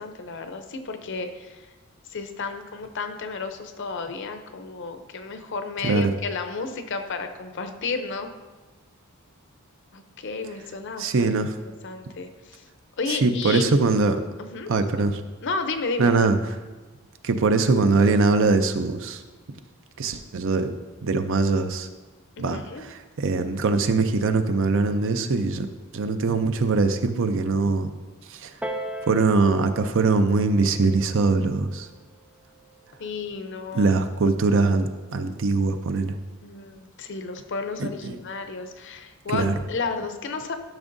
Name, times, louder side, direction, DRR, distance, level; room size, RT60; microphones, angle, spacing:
voice 1, 0.0-1.6 2.1-8.3 9.9-11.3 11.8-12.6 13.0-13.6 14.5-14.7 15.0-15.1 15.4-16.1 22.4-22.8 33.0-33.9 36.4-40.5, left 4 dB, 55° left, 7 dB, 0.6 m, -32 dB
voice 2, 11.0-11.5 13.1-14.2 14.7-15.2 16.0-16.4 17.2-19.2 20.0-20.7 21.0-21.9 22.4-25.7 25.9-27.9 28.3-28.5 29.1-31.9 33.7-36.2 37.8-38.2 39.3-39.6, right 3 dB, 60° right, 9 dB, 0.5 m, -22 dB
Piano, 28.6-33.8 34.6-34.7, right 1 dB, 5° right, 0.4 m, -40 dB
12.5 x 6.1 x 2.6 m, 1.2 s
head